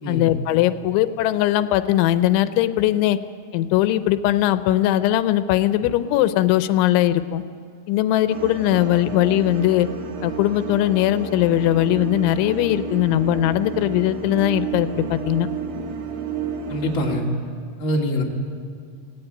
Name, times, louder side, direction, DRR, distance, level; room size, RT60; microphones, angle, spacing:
voice 1, 0.1-3.2 3.5-7.4 7.9-9.9 10.2-15.5, left 13 dB, 90° left, 11 dB, 3.1 m, -20 dB
sound 1, 8.3-17.2, right 7 dB, 75° right, 4.0 m, -31 dB
voice 2, 16.7-17.3 17.8-18.2, left 1 dB, 30° left, -2 dB, 2.7 m, -24 dB
26.0 x 17.5 x 9.0 m, 2.2 s
omnidirectional pair, 5.2 m